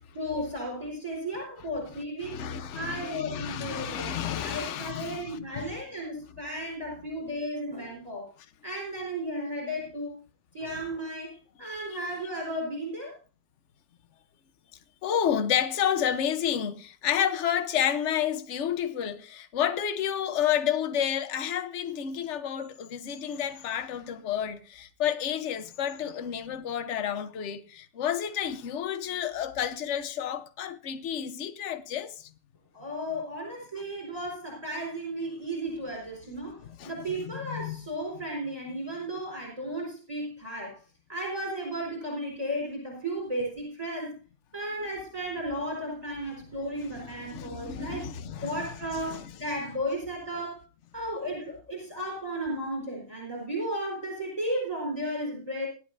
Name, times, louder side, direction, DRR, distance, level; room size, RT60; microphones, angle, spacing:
voice 1, 0.1-2.4 2.7-4.1 4.4-8.2 8.6-10.1 10.5-13.1 32.7-36.6 36.8-40.8 41.1-44.1 44.5-48.1 48.4-50.6 50.9-55.7, right 1 dB, 15° right, 4.3 m, -34 dB
voice 2, 1.9-5.8 11.6-11.9 15.0-32.3 36.6-36.9 37.3-37.9 46.7-49.4, left 9 dB, 50° left, 0.8 m, -30 dB
18.0 x 12.0 x 2.7 m
omnidirectional pair, 2.4 m